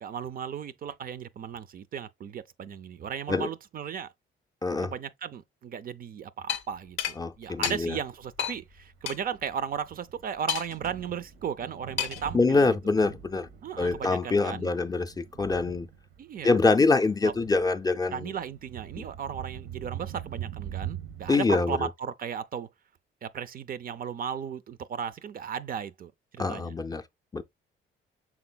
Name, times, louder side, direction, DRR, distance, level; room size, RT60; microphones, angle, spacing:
voice 1, 0.0-4.1 4.8-12.8 13.6-14.7 16.2-16.6 17.2-17.3 18.1-22.7 23.2-26.7, right 7 dB, 45° right, 0.4 m, -36 dB
voice 2, 4.6-4.9 7.2-8.0 12.3-13.5 13.8-15.9 16.4-18.3 19.0-19.1 21.3-21.8 26.4-27.0 27.3-27.4, left 3 dB, 20° left, 0.4 m, -25 dB
sound 1, 6.5-6.6 7.0-7.2 7.6-7.8 8.4-8.6 9.1-9.2 10.5-10.9 12.0-12.3, left 10 dB, 90° left, 0.5 m, -30 dB
Thunder, 7.9-21.4, right 10 dB, 80° right, 0.7 m, -43 dB
5.9 x 3.8 x 2.2 m
cardioid pair, 90°, 20 cm